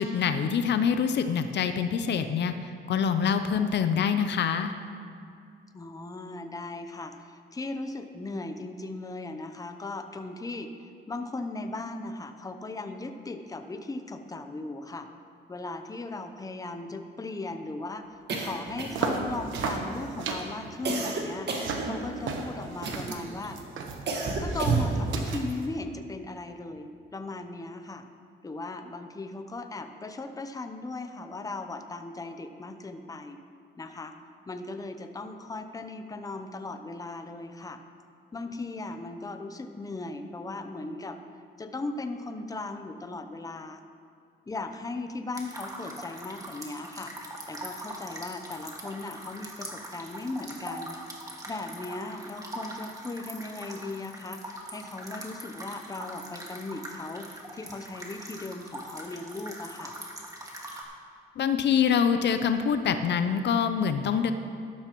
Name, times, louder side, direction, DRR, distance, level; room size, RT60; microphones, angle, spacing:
voice 1, 0.0-4.7 61.4-64.3, left 7 dB, 60° left, 9 dB, 0.6 m, -25 dB
voice 2, 5.7-15.1 15.5-23.6 24.4-28.1 28.4-33.4 33.8-34.1 34.5-37.8 38.3-41.2 41.6-43.8 44.5-47.1 47.5-51.0 51.5-59.9, left 2 dB, 15° left, 7 dB, 0.7 m, -37 dB
sound 1, 18.3-19.2 19.5-20.0 20.8-22.3 22.8-23.3 24.1-25.1, right 3 dB, 60° right, 1.6 m, -33 dB
sound 2, 18.7-25.7, right 4 dB, 75° right, 1.1 m, -33 dB
sound 3, 45.3-60.8, right 1 dB, 15° right, 1.8 m, -42 dB
12.5 x 12.0 x 3.0 m, 2.3 s
cardioid pair, 90°, 20 cm